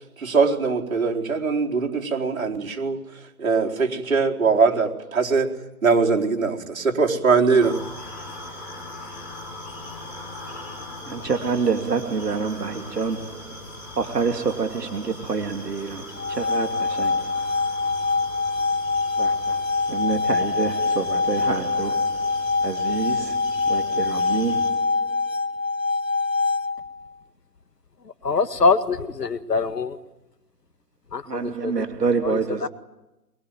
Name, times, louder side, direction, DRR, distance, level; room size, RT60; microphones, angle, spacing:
voice 1, 0.2-3.0 3.4-5.5 5.8-7.7, right 4 dB, 60° right, 4.3 m, -21 dB
sound 1, 7.6-24.7, left 1 dB, 5° left, 1.3 m, -40 dB
voice 2, 11.1-13.5 14.0-17.3 19.2-19.6 19.9-22.3 22.6-24.9 31.3-32.7, right 5 dB, 85° right, 3.0 m, -27 dB
sound 2, 16.1-27.1, left 4 dB, 55° left, 1.9 m, -24 dB
voice 3, 28.2-30.0 31.1-31.9 32.2-32.7, left 4 dB, 85° left, 2.0 m, -24 dB
24.0 x 23.0 x 9.3 m
hypercardioid pair, 175°, 47 cm